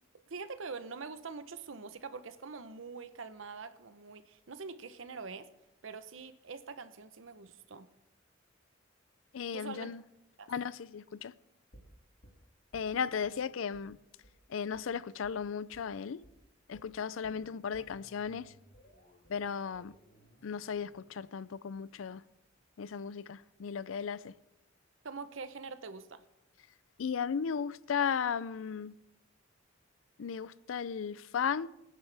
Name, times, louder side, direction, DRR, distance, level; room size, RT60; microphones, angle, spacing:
voice 1, 0.3-5.5 5.8-7.9 9.5-9.9 10.4-10.5 25.0-26.2, right 4 dB, 75° right, 0.8 m, -44 dB
voice 2, 9.3-10.0 10.5-11.3 12.7-14.0 14.5-16.2 16.7-18.5 19.3-19.9 20.4-22.2 22.8-24.3 27.0-29.0 30.2-31.7, left 6 dB, 85° left, 0.4 m, -35 dB
sound 1, 11.7-13.3 13.7-13.9 14.2-14.4 14.7-14.9 15.2-15.4 15.7-15.9 16.2-16.4 16.7-22.7 23.0-23.1, equal, 55° left, 3.6 m, -61 dB
24.0 x 9.8 x 3.4 m
head